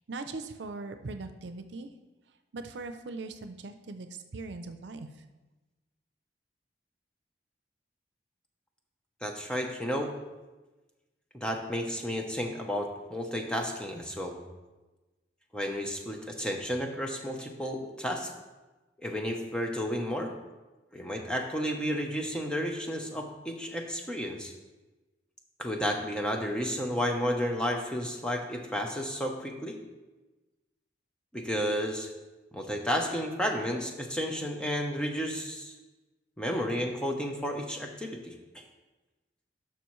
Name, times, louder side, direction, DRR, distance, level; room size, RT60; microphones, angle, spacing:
voice 1, 0.1-1.9 2.5-5.1, right 3 dB, 80° right, 8 dB, 0.6 m, -40 dB
voice 2, 9.2-10.1 11.4-14.4 15.5-18.3 19.0-20.3 20.9-24.5 25.6-29.8 31.3-32.1 32.5-35.7 36.4-38.6, equal, 5° left, 2 dB, 0.8 m, -32 dB
11.5 x 5.9 x 3.1 m, 1.1 s
head